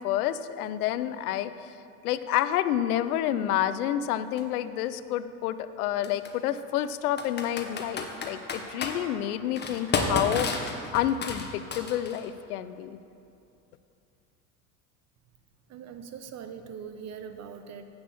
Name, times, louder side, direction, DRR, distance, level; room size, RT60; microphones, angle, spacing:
voice 1, 0.0-1.7 2.0-13.0, left 11 dB, 85° left, 13 dB, 0.6 m, -29 dB
Computer keyboard, 4.4-4.5 6.0-6.3 7.2-8.9 9.6-12.2, left 4 dB, 25° left, 1.1 m, -31 dB
voice 2, 15.7-17.9, right 7 dB, 40° right, 8 dB, 0.8 m, -41 dB
7.8 x 6.0 x 7.0 m, 2.6 s
supercardioid pair, 95°, 43 cm